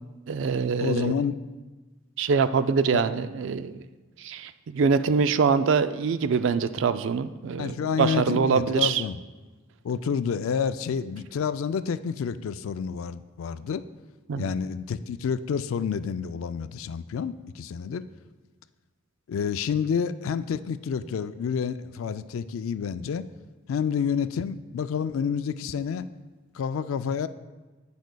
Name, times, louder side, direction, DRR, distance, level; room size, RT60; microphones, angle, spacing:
voice 1, 0.3-1.1 2.2-3.8 4.2-9.0 14.3-14.5, right 5 dB, 65° right, 12 dB, 0.3 m, -24 dB
voice 2, 0.8-1.4 2.9-3.0 7.6-9.2 9.8-13.8 14.4-18.0 19.3-23.3 23.7-26.1 26.5-27.3, left 6 dB, 80° left, 13 dB, 0.3 m, -29 dB
15.5 x 5.2 x 2.2 m, 1.3 s
head